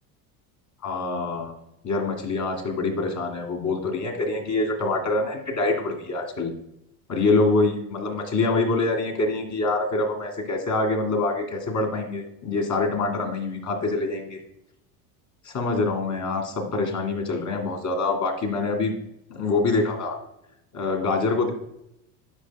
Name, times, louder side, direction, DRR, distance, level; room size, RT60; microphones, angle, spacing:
voice 1, 0.8-1.5 1.8-6.5 7.1-14.4 15.4-19.0 19.3-20.2 20.7-21.5, left 3 dB, 35° left, 2 dB, 2.2 m, -25 dB
9.7 x 5.6 x 2.3 m, 0.79 s
supercardioid pair, 100°, 50 cm